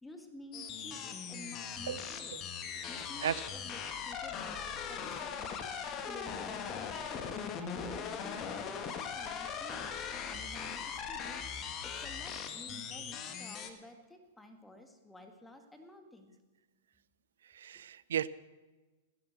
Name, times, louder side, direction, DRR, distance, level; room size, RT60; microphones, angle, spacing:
voice 1, 0.0-2.4 2.9-5.5 6.0-9.9 10.3-11.4 11.8-16.3, left 1 dB, 5° left, 6 dB, 1.9 m, -52 dB
sound 1, 0.5-13.7, left 7 dB, 35° left, 1.6 m, -40 dB
voice 2, 17.6-18.3, right 9 dB, 70° right, 18 dB, 0.6 m, -34 dB
17.0 x 11.0 x 6.5 m, 1.2 s
figure-of-eight pair, 105°, 0 cm